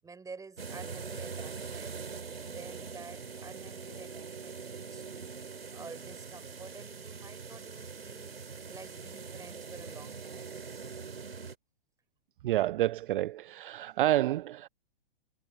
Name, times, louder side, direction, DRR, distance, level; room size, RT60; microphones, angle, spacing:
voice 1, 0.0-2.0 2.5-5.3 5.7-8.3 8.7-11.1, right 4 dB, 10° right, 6.5 m, -50 dB
sound 1, 0.6-11.5, right 5 dB, 85° right, 4.5 m, -43 dB
voice 2, 12.4-14.7, right 14 dB, 60° right, 0.4 m, -29 dB
hypercardioid pair, 110°, 29 cm